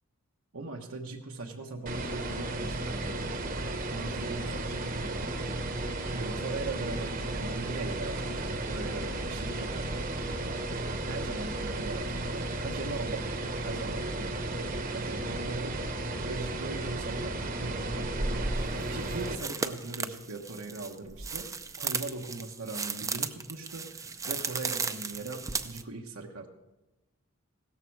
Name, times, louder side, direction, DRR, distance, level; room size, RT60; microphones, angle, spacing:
voice 1, 0.5-5.5 6.1-10.3 11.1-14.5 14.9-15.8 16.2-26.5, right 3 dB, 80° right, 1 dB, 1.2 m, -40 dB
sound 1, 1.9-19.4, right 2 dB, 40° right, 1.0 m, -34 dB
sound 2, 17.0-17.1 18.0-25.8, right 4 dB, 15° right, 0.5 m, -35 dB
16.5 x 13.5 x 4.7 m, 1.0 s
head